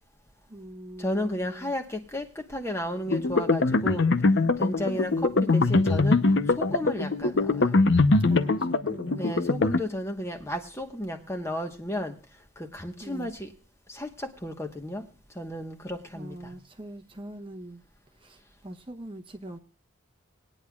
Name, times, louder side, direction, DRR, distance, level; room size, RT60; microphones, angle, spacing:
voice 1, 0.5-1.7 4.9-5.2 8.3-9.5 13.0-13.3 16.1-17.8 18.2-19.6, right 1 dB, 25° right, 0.9 m, -42 dB
voice 2, 1.0-4.1 4.6-6.2 6.6-7.7 9.2-12.1 12.7-13.5 13.9-15.0 15.4-16.5, equal, 15° left, 1.1 m, -33 dB
sound 1, 3.1-9.8, left 3 dB, 60° left, 0.7 m, -23 dB
20.0 x 10.0 x 2.3 m
head